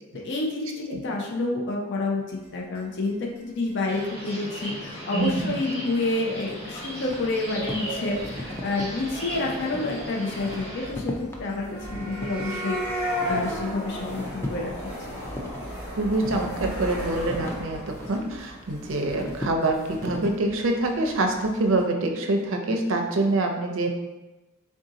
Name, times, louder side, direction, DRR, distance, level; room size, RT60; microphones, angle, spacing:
voice 1, 0.2-11.1 11.4-14.9, left 2 dB, 55° left, -1 dB, 0.6 m, -29 dB
sound 1, 2.8-2.9 3.0-3.1 3.4-3.5 3.7-3.8 4.0-4.1 4.3-4.4 4.6-4.9 5.2-5.3 5.5-5.6 5.9-6.1 6.5-6.6 6.8-7.4 7.7-8.1 8.4-8.5 8.7-8.8 9.0-9.1 9.3-9.4 9.6-9.7 9.9-21.8, equal, 80° left, 1.4 m, -36 dB
sound 2, 3.9-10.9, right 1 dB, 30° left, 1.1 m, -36 dB
voice 2, 5.1-5.6 16.0-23.9, right 2 dB, 65° right, 3 dB, 0.5 m, -25 dB
sound 3, 6.3-20.4, left 1 dB, 10° left, 0.4 m, -39 dB
3.6 x 2.7 x 3.8 m, 1.1 s
head